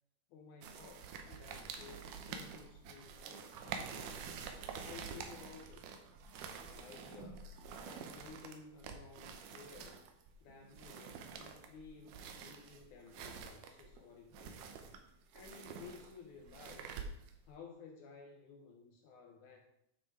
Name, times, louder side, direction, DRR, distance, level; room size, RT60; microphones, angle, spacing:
voice 1, 0.3-4.3 4.8-5.9 6.6-7.5 7.8-10.0 10.4-14.7 15.3-17.0 17.4-19.6, left 5 dB, 70° left, 2 dB, 2.4 m, -55 dB
sound 1, 0.6-17.5, right 6 dB, 80° right, 2.5 m, -48 dB
9.4 x 6.1 x 4.7 m, 0.79 s
omnidirectional pair, 3.8 m